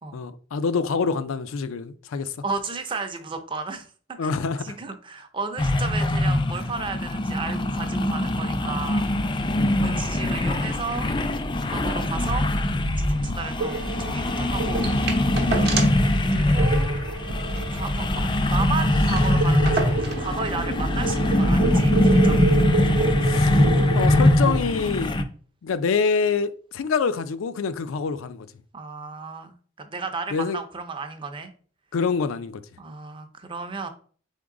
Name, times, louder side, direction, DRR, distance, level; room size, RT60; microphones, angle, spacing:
voice 1, 0.1-2.3 4.2-4.7 9.5-10.0 13.2-13.4 15.6-15.9 23.2-23.5 23.9-25.1 25.6-28.5 30.3-30.6 31.9-32.6, left 5 dB, 85° left, 0.4 m, -26 dB
voice 2, 2.4-3.9 4.2-9.4 9.8-11.1 11.7-12.5 13.0-14.9 16.2-17.0 17.7-22.6 28.7-31.5 32.8-33.9, right 4 dB, 25° right, 0.5 m, -34 dB
sound 1, 5.6-25.2, left 1 dB, 25° left, 0.4 m, -22 dB
sound 2, 13.6-24.6, right 4 dB, 75° right, 0.4 m, -30 dB
sound 3, 14.8-16.1 16.4-16.5 16.8-17.0 17.4-18.5 18.8-18.9 19.0-20.3 21.2-21.3, right 5 dB, 55° right, 0.7 m, -31 dB
3.8 x 3.6 x 3.7 m
head